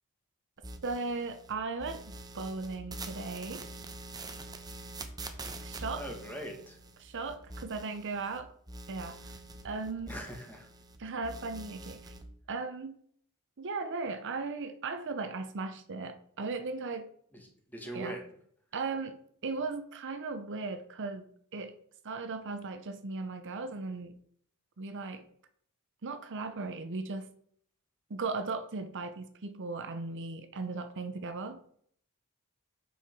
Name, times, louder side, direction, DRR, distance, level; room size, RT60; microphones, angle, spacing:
sound 1, 0.6-1.5 1.8-8.4 8.7-11.0 11.2-12.2, right 2 dB, 15° right, 0.9 m, -45 dB
voice 1, 0.8-3.7 5.6-6.0 7.0-8.5 8.9-9.3 9.6-10.2 11.0-12.1 12.5-13.0 13.6-17.1 17.9-18.2 18.7-21.8 22.0-24.1 24.8-25.2 26.0-27.3 28.1-31.6, right 3 dB, 55° right, 0.7 m, -37 dB
voice 2, 6.0-6.8 10.1-10.7 17.3-18.2, right 1 dB, 10° left, 1.7 m, -41 dB
7.3 x 5.6 x 4.6 m
head